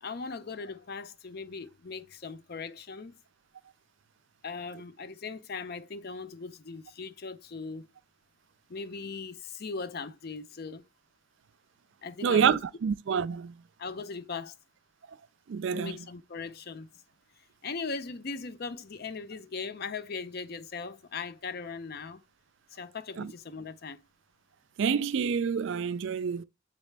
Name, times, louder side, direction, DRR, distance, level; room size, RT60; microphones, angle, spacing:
voice 1, 0.0-3.2 4.4-7.9 8.7-10.8 12.0-12.6 13.8-14.5 15.7-16.9 17.6-22.2 22.7-24.0, left 4 dB, 50° left, 0.5 m, -39 dB
voice 2, 12.2-13.5 15.5-16.0 23.2-23.3 24.8-26.4, right 7 dB, 60° right, 0.3 m, -27 dB
7.3 x 4.0 x 3.3 m
head